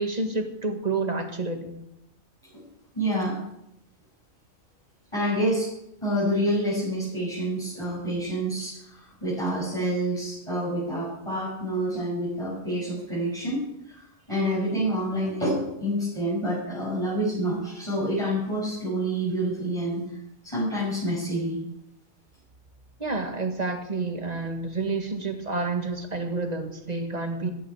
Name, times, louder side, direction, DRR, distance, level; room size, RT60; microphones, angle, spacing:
voice 1, 0.0-1.8 23.0-27.5, right 3 dB, 30° right, 5 dB, 1.8 m, -29 dB
voice 2, 2.9-3.4 5.1-5.7 6.0-14.0 14.3-20.0 20.4-21.6, right 1 dB, 20° left, -9 dB, 7.5 m, -27 dB
16.0 x 14.5 x 4.9 m, 0.80 s
omnidirectional pair, 1.5 m